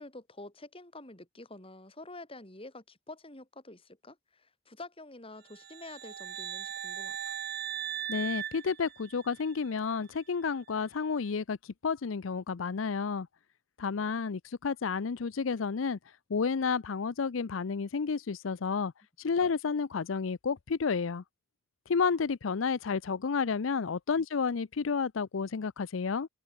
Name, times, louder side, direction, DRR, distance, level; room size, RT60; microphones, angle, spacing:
voice 1, 0.0-7.3, left 2 dB, 30° left, 4.6 m, -48 dB
sound 1, 5.5-9.5, right 10 dB, 50° right, 0.8 m, -38 dB
voice 2, 8.1-11.6 11.8-13.3 13.8-16.0 16.3-18.9 19.2-21.2 21.9-26.3, left 5 dB, 85° left, 0.6 m, -31 dB
head